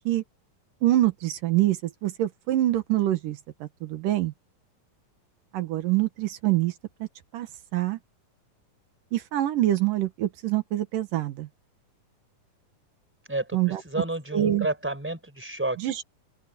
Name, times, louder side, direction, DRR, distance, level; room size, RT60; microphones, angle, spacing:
voice 1, 0.8-4.3 5.5-6.7 7.3-8.0 9.1-11.5 13.5-13.8 14.3-14.7 15.8-16.0, right 14 dB, 80° right, 2.9 m, -25 dB
voice 2, 13.3-13.6 13.8-16.0, right 2 dB, 5° right, 4.2 m, -30 dB
open air
omnidirectional pair, 3.8 m